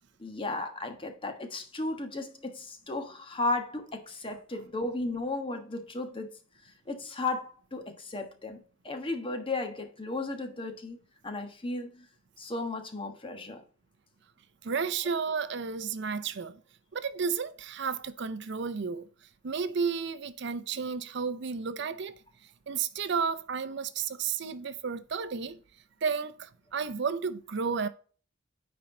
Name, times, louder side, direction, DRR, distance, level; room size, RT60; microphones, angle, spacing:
voice 1, 0.2-6.3 6.6-11.0 11.2-12.1 12.4-13.6, left 2 dB, 30° left, 1.3 m, -35 dB
voice 2, 14.6-16.6 16.9-19.1 19.4-22.1 22.7-25.6 26.0-27.9, right 5 dB, 65° right, 0.6 m, -32 dB
9.4 x 4.5 x 3.8 m
head